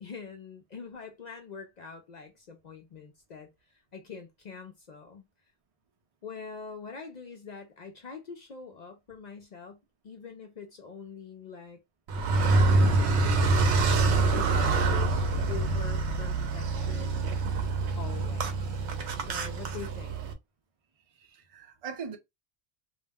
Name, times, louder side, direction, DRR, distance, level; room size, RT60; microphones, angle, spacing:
voice 1, 0.0-5.3 6.2-11.8 12.3-17.2 18.0-18.8 19.2-20.2, left 5 dB, 60° left, 0.5 m, -44 dB
Car, 12.1-20.3, right 3 dB, 80° right, 0.9 m, -26 dB
voice 2, 12.3-12.6 21.2-22.2, right 6 dB, 45° right, 0.5 m, -41 dB
2.3 x 2.0 x 3.4 m
omnidirectional pair, 1.1 m